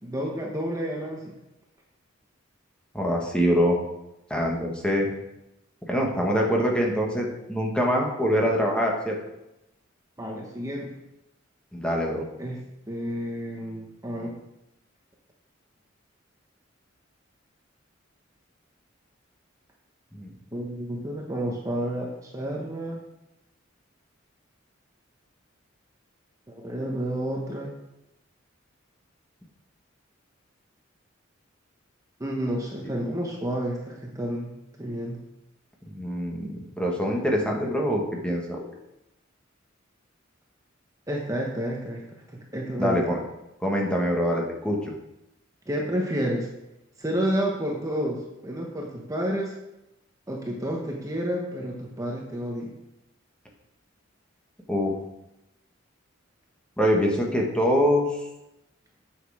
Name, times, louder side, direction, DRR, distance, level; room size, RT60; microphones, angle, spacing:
voice 1, 0.0-1.3 10.2-10.9 12.4-12.6 12.9-14.3 20.5-23.0 26.5-27.7 32.2-34.5 34.8-35.2 41.1-42.0 42.5-43.0 45.7-46.5 47.0-49.5 50.3-52.7, equal, 15° right, -1 dB, 1.2 m, -30 dB
voice 2, 2.9-3.8 4.3-5.1 5.9-9.2 11.7-12.2 20.1-20.3 35.9-38.6 42.8-43.2 43.6-44.9 54.7-54.9 56.8-58.1, equal, 5° left, -1 dB, 1.5 m, -24 dB
9.0 x 6.5 x 5.0 m, 0.89 s
head